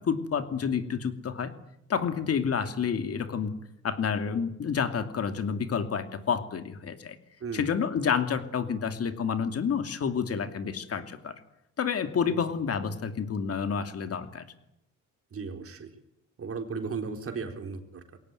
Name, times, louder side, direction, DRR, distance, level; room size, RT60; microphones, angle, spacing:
voice 1, 0.0-1.5 1.9-3.5 3.8-7.2 7.5-11.4 11.8-14.5, left 6 dB, 50° left, 8 dB, 2.7 m, -29 dB
voice 2, 15.3-15.9 16.4-18.2, right 5 dB, 50° right, 5 dB, 4.1 m, -36 dB
22.0 x 18.0 x 9.4 m, 0.83 s
cardioid pair, 90°, 30 cm